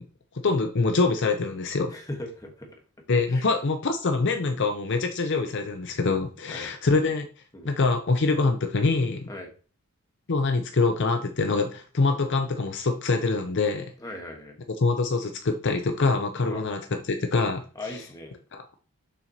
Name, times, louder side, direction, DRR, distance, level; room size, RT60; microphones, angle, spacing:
voice 1, 0.4-1.9 3.1-7.3 7.6-9.2 10.3-13.9 14.8-17.6 18.5-18.6, left 3 dB, 55° left, 6 dB, 0.6 m, -24 dB
voice 2, 1.9-2.8 3.3-3.5 6.5-6.7 7.5-7.7 9.3-9.5 14.0-14.6 16.5-16.6 17.7-18.4, left 1 dB, 15° left, 2 dB, 1.3 m, -39 dB
6.8 x 5.8 x 2.8 m, 0.39 s
head